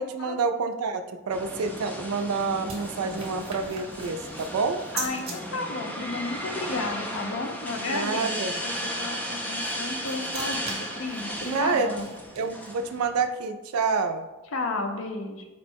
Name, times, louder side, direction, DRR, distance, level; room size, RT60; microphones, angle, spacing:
voice 1, 0.0-4.8 7.9-8.5 11.4-11.9 12.4-14.3, right 4 dB, 85° right, 8 dB, 0.4 m, -28 dB
sound 1, 1.3-13.3, equal, 5° left, 0.3 m, -35 dB
sound 2, 1.7-5.4 9.5-12.9, right 4 dB, 25° right, 0.7 m, -41 dB
voice 2, 4.9-8.4 8.6-12.1 14.5-15.5, left 3 dB, 65° left, 4 dB, 0.5 m, -33 dB
4.3 x 2.1 x 4.4 m, 1.1 s
head